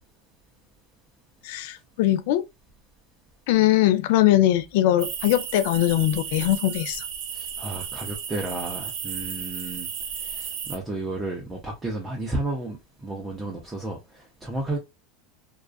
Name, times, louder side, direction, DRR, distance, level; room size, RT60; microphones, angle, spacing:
voice 1, 1.4-2.4 3.5-7.0, left 14 dB, 70° left, 0.4 m, -21 dB
sound 1, 5.0-10.8, right 7 dB, 60° right, 0.7 m, -34 dB
voice 2, 7.3-9.9 10.2-14.8, right 2 dB, 15° right, 0.5 m, -32 dB
2.3 x 2.3 x 2.3 m
supercardioid pair, 130°, 0 cm